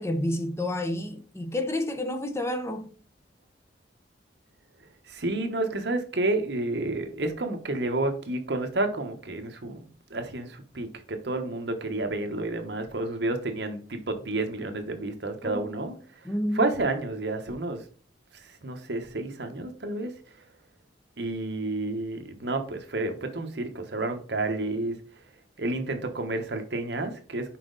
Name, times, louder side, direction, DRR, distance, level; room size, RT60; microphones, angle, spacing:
voice 1, 0.0-2.9 15.4-15.7 16.2-16.7, left 1 dB, 15° left, 0.7 m, -30 dB
voice 2, 5.1-16.0 16.5-17.8 18.4-20.1 21.2-25.0 25.6-27.6, right 2 dB, 65° right, 1.1 m, -30 dB
5.9 x 5.0 x 3.9 m
head